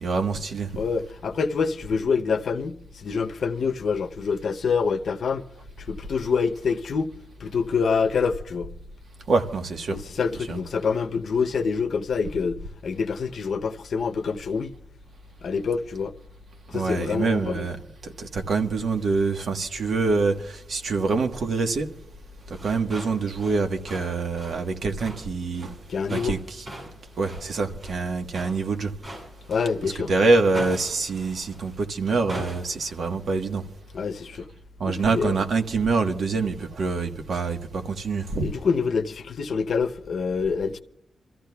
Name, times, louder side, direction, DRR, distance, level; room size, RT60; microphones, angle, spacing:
voice 1, 0.0-0.7 9.3-10.0 10.3-10.6 16.7-17.8 18.0-21.9 22.6-25.7 26.1-26.7 27.2-28.9 29.8-33.6 34.8-38.5, right 4 dB, 60° right, 1.3 m, -25 dB
voice 2, 0.8-5.4 5.8-7.1 7.4-8.7 9.9-14.7 15.4-16.1 16.7-17.7 25.9-26.4 29.5-30.1 33.9-34.5 34.9-35.4 38.4-40.8, left 5 dB, 55° left, 0.8 m, -26 dB
sound 1, 22.4-30.0 30.5-31.8 32.3-33.0, right 1 dB, 30° right, 7.4 m, -41 dB
28.5 x 14.0 x 2.3 m
wide cardioid pair, 180°, 0 cm